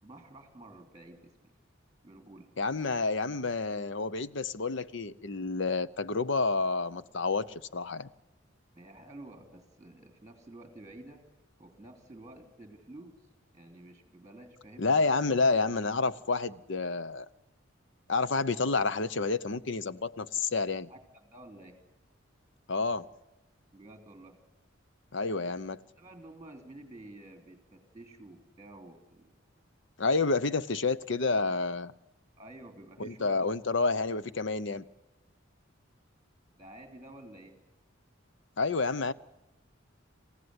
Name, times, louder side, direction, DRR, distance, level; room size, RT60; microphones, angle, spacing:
voice 1, 0.0-1.5 2.0-2.5 8.7-11.3 11.6-13.3 13.5-14.9 20.9-21.8 23.7-24.4 26.0-29.4 32.4-33.8 34.7-34.8 36.5-37.6, right 1 dB, 15° right, 3.2 m, -51 dB
voice 2, 2.6-8.1 14.8-17.3 18.1-20.9 22.7-23.1 25.1-25.8 30.0-31.9 33.0-34.8 38.6-39.1, left 3 dB, 65° left, 0.8 m, -29 dB
27.5 x 15.5 x 9.7 m
head